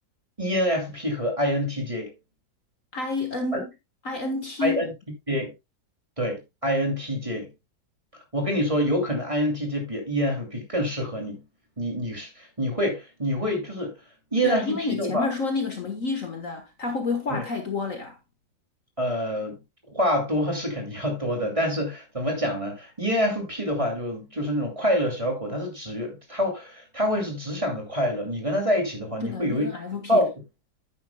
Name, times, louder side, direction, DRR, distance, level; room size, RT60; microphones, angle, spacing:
voice 1, 0.4-2.1 3.5-3.6 4.6-4.9 5.3-5.5 6.2-7.5 8.3-11.4 11.8-13.9 14.3-15.3 17.3-17.4 19.0-19.6 19.9-29.7 30.1-30.3, equal, 15° right, 2.6 m, -26 dB
voice 2, 2.9-3.7 4.0-4.8 14.4-18.2 29.2-30.2, left 4 dB, 50° left, 1.6 m, -29 dB
10.5 x 9.6 x 2.2 m
omnidirectional pair, 2.0 m